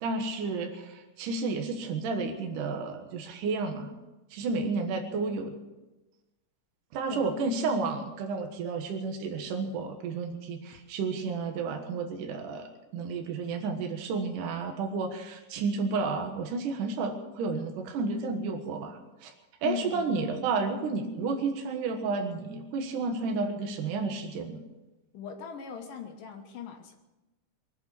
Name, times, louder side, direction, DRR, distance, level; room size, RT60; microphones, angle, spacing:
voice 1, 0.0-3.9 4.3-5.6 6.9-19.3 19.6-24.6, right 4 dB, 70° right, 4 dB, 3.0 m, -31 dB
voice 2, 19.6-20.1 25.1-26.9, left 8 dB, 80° left, 3 dB, 2.8 m, -39 dB
22.5 x 8.8 x 7.1 m, 1.1 s
omnidirectional pair, 3.9 m